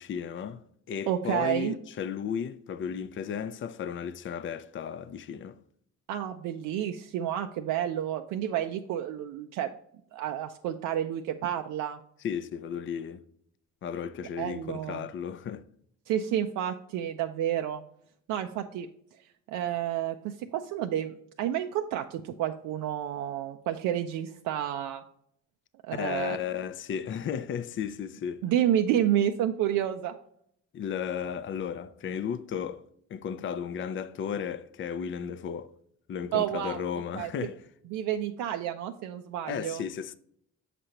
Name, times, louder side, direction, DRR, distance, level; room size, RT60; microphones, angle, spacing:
voice 1, 0.0-5.6 12.2-13.2 13.8-15.7 25.9-28.4 30.7-32.8 33.1-35.7 36.1-37.6 39.5-40.2, left 7 dB, 40° left, 0.4 m, -34 dB
voice 2, 1.1-1.7 6.1-9.7 10.1-12.0 14.4-15.1 16.1-17.8 18.3-18.9 19.5-25.0 25.8-26.4 28.4-30.1 36.3-36.9 37.1-37.3 37.9-39.8, right 11 dB, 90° right, 0.5 m, -30 dB
6.7 x 5.0 x 2.9 m
cardioid pair, 90°, 30 cm